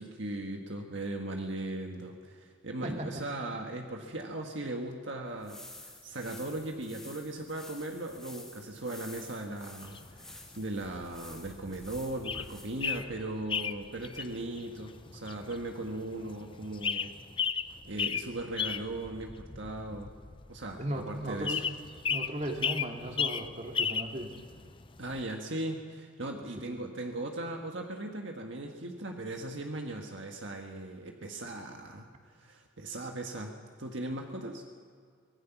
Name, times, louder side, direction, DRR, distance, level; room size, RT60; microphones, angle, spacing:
voice 1, 0.0-17.1 17.8-20.1 20.5-21.6 25.0-32.1 32.3-33.5 33.8-34.6, right 2 dB, 65° right, 2 dB, 1.6 m, -38 dB
sound 1, 5.3-13.0, left 1 dB, 5° left, 2.8 m, -51 dB
sound 2, 9.8-25.2, left 6 dB, 25° left, 0.6 m, -35 dB
voice 2, 20.8-21.7 22.1-24.3 26.6-26.8, right 1 dB, 35° right, 2 dB, 2.5 m, -36 dB
24.5 x 18.0 x 6.1 m, 2.1 s
head